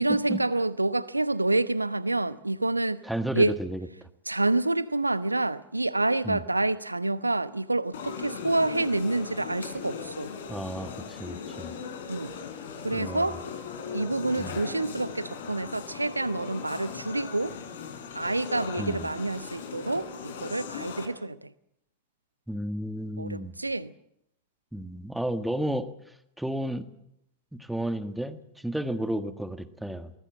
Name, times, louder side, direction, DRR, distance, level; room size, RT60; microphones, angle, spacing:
voice 1, 0.0-3.0 3.3-3.6 4.3-10.3 12.1-12.3 12.8-13.4 13.9-17.5 18.1-21.5 23.2-23.9, right 2 dB, 85° right, 0.9 m, -28 dB
voice 2, 3.0-3.9 6.2-6.4 10.5-11.7 12.9-13.4 14.4-14.6 18.8-19.1 22.5-23.5 24.7-25.9 26.4-26.8 27.5-30.1, right 1 dB, 5° right, 1.7 m, -32 dB
sound 1, 7.9-21.1, left 6 dB, 60° left, 3.8 m, -39 dB
23.5 x 20.0 x 7.5 m
figure-of-eight pair, 90°, 0 cm